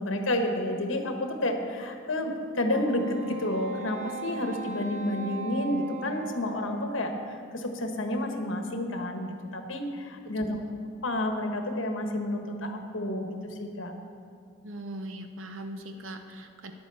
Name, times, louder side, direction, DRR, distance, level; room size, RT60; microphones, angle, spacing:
voice 1, 0.0-10.6 11.0-13.3 13.6-13.9, left 1 dB, 75° left, 4 dB, 1.3 m, -30 dB
Wind instrument woodwind instrument, 2.6-7.2, right 3 dB, 35° right, 0.9 m, -39 dB
voice 2, 10.4-10.7 14.6-16.7, right 1 dB, 90° right, 6 dB, 0.8 m, -40 dB
10.5 x 8.9 x 6.9 m, 2.6 s
head